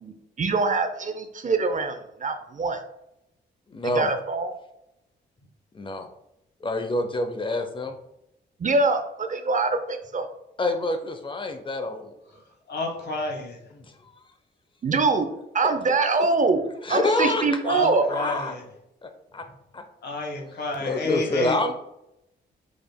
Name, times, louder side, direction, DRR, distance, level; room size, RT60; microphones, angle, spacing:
voice 1, 0.0-2.8 3.9-4.5 8.6-10.2 14.8-15.3 15.5-16.6 16.9-18.1, right 3 dB, 40° right, 7 dB, 0.6 m, -24 dB
voice 2, 3.7-4.1 5.7-6.1 6.6-7.9 10.6-12.1 13.7-13.9 16.8-17.8 18.1-18.5 19.0-19.5 19.7-19.8 20.8-21.7, left 2 dB, 25° left, 7 dB, 0.7 m, -27 dB
voice 3, 12.7-13.6 17.7-18.6 20.0-21.6, left 2 dB, 60° left, 2 dB, 1.2 m, -30 dB
4.9 x 3.3 x 2.2 m, 0.83 s
supercardioid pair, 50°, 19 cm